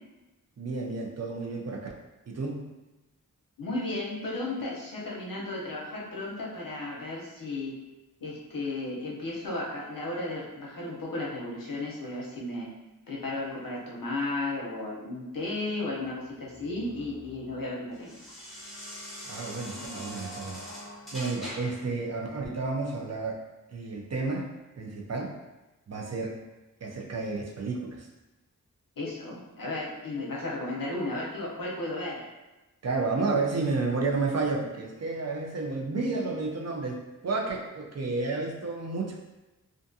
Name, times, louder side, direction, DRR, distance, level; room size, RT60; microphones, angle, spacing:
voice 1, 0.6-1.9 2.3-2.7 19.3-20.6 21.1-23.4 23.7-24.5 24.8-25.3 25.9-26.4 26.8-28.1 32.8-39.2, right 3 dB, 50° right, 0 dB, 0.5 m, -31 dB
voice 2, 3.6-7.8 8.2-12.7 13.1-18.1 19.7-20.0 29.0-32.2, left 2 dB, 80° left, -3 dB, 0.7 m, -34 dB
sound 1, 16.0-21.9, equal, ahead, 0.9 m, -43 dB
2.5 x 2.3 x 2.6 m, 1.1 s
wide cardioid pair, 65°, 33 cm